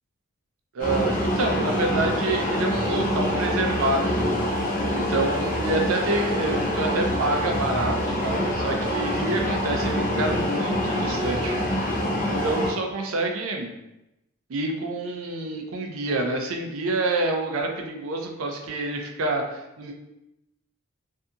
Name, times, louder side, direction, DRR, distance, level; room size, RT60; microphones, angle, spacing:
voice 1, 0.7-4.3 4.9-11.6 12.3-13.7 14.5-19.9, right 2 dB, 75° right, 3 dB, 0.5 m, -27 dB
sound 1, 0.8-12.7, left 1 dB, 40° left, 0.5 m, -25 dB
2.7 x 2.5 x 2.3 m, 0.91 s
head